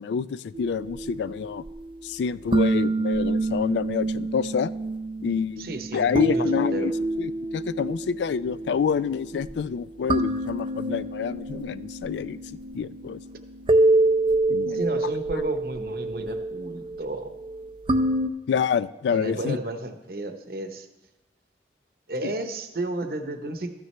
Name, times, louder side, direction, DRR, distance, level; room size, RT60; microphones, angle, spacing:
voice 1, 0.0-1.6 2.0-4.7 5.2-6.9 7.2-13.2 14.5-15.0 18.5-19.6 22.2-22.3, left 6 dB, 80° left, 17 dB, 0.3 m, -28 dB
sound 1, 0.5-18.3, right 2 dB, 30° right, 0.4 m, -27 dB
voice 2, 5.6-6.9 14.7-17.3 19.1-20.9 22.1-23.7, right 2 dB, 55° right, 7 dB, 0.8 m, -32 dB
13.5 x 9.5 x 3.2 m, 1.0 s
head